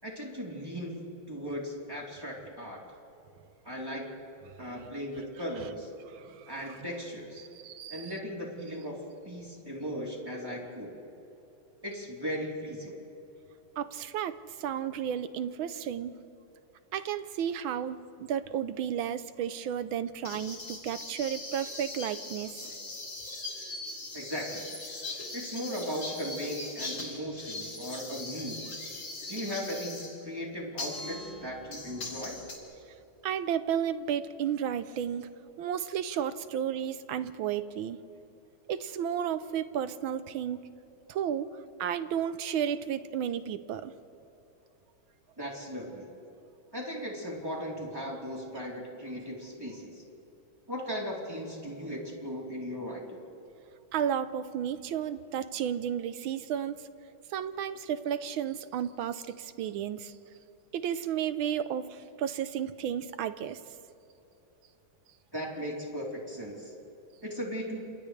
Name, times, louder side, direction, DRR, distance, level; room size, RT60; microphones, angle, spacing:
voice 1, 0.0-2.8 3.6-4.0 4.6-5.9 6.5-7.4 7.9-9.0 9.2-10.9 11.8-13.0 24.1-24.7 25.3-28.6 29.3-32.4 45.4-46.1 46.7-50.0 50.7-53.2 65.3-66.7 67.2-68.0, equal, 10° right, -3 dB, 3.5 m, -37 dB
voice 2, 6.1-6.8 7.4-8.1 13.8-16.1 16.9-22.7 33.2-35.3 35.6-38.0 38.7-40.7 41.1-41.5 41.8-43.9 53.9-56.8 57.3-60.1 60.7-63.6, right 9 dB, 75° right, 12 dB, 1.5 m, -33 dB
sound 1, 20.2-30.1 30.8-32.6, left 2 dB, 55° left, 3.9 m, -40 dB
29.0 x 27.5 x 3.3 m, 3.0 s
omnidirectional pair, 2.4 m